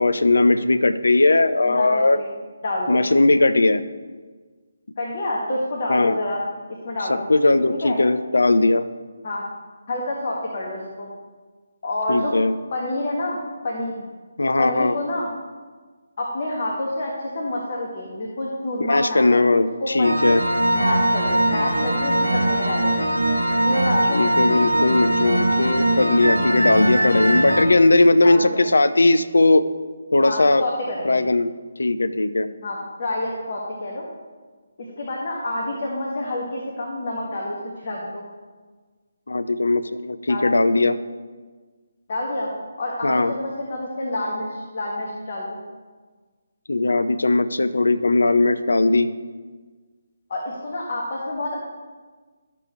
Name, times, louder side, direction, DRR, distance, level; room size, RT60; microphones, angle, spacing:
voice 1, 0.0-2.2 2.9-3.8 5.9-6.2 7.1-8.8 12.1-12.5 14.4-15.0 18.8-20.4 24.1-29.6 30.1-30.6 31.0-31.5 31.8-32.5 39.3-41.0 43.0-43.3 46.7-49.1, left 2 dB, 65° left, 12 dB, 0.5 m, -18 dB
voice 2, 1.6-2.3 2.6-3.0 5.0-6.5 6.8-7.3 7.7-8.0 9.2-9.5 9.9-11.1 11.8-12.3 12.7-13.4 13.6-14.0 14.6-15.3 16.2-19.4 19.8-20.2 20.7-22.9 23.6-24.3 28.2-28.6 30.2-31.2 32.6-34.0 34.8-38.3 40.3-40.5 42.1-42.5 42.8-45.6 50.3-51.6, left 1 dB, 40° left, -3 dB, 1.5 m, -28 dB
sound 1, 20.0-27.7, right 1 dB, 75° right, 1.5 m, -21 dB
13.0 x 6.9 x 3.1 m, 1.4 s
figure-of-eight pair, 145°, 0 cm